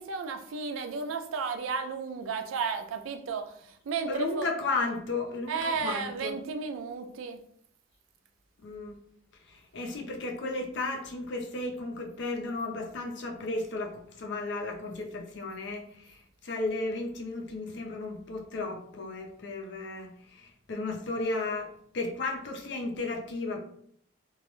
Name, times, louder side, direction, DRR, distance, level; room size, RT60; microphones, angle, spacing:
voice 1, 0.0-3.5 3.9-4.5 5.5-7.4, right 5 dB, 85° right, 7 dB, 0.4 m, -33 dB
voice 2, 4.1-6.4 8.6-9.0 9.5-23.6, left 3 dB, 60° left, 3 dB, 0.4 m, -34 dB
2.2 x 2.0 x 2.9 m, 0.63 s
head